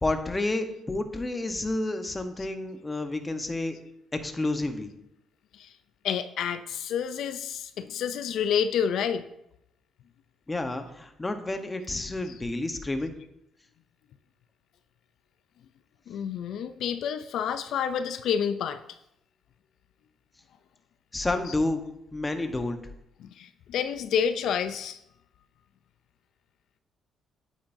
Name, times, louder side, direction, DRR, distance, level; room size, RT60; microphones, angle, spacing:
voice 1, 0.0-3.8 4.1-4.9 10.5-13.2 21.1-21.8 22.1-22.8, left 2 dB, 20° left, 7 dB, 1.0 m, -30 dB
voice 2, 6.0-9.2 12.2-12.4 16.1-18.8 21.4-21.6 23.2-25.0, left 8 dB, 75° left, 10 dB, 0.4 m, -29 dB
9.0 x 8.5 x 2.7 m, 0.82 s
cardioid pair, 90°, 0 cm